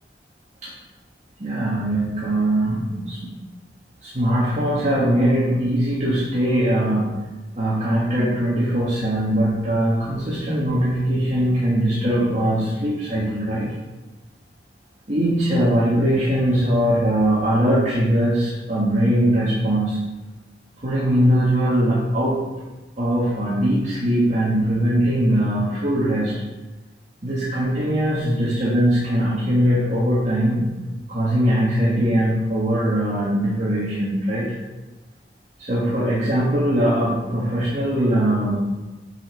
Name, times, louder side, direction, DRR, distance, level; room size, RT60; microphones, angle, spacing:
voice 1, 1.4-3.3 4.0-7.1 7.6-13.7 15.1-20.0 20.8-22.4 23.0-26.3 27.2-30.7 31.1-34.6 35.6-38.8, right 1 dB, 40° right, -8 dB, 1.8 m, -21 dB
7.9 x 6.3 x 5.6 m, 1.2 s
head